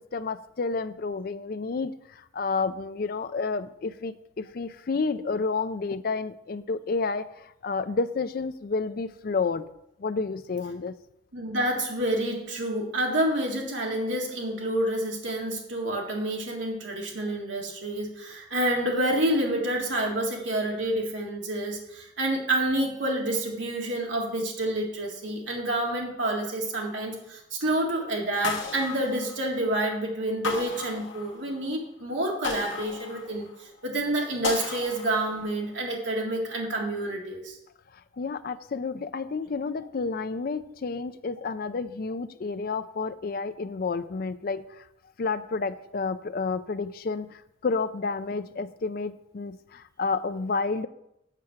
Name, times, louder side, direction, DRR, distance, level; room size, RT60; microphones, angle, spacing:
voice 1, 0.1-9.7 10.0-11.0 37.9-44.9 45.2-50.9, left 4 dB, 50° left, 13 dB, 0.4 m, -30 dB
voice 2, 11.3-37.6, right 1 dB, 70° right, -1 dB, 1.9 m, -28 dB
sound 1, 28.4-29.8 30.4-31.6 32.4-33.7 34.4-35.6, left 5 dB, 80° left, 1.3 m, -35 dB
7.5 x 5.7 x 6.4 m, 0.81 s
head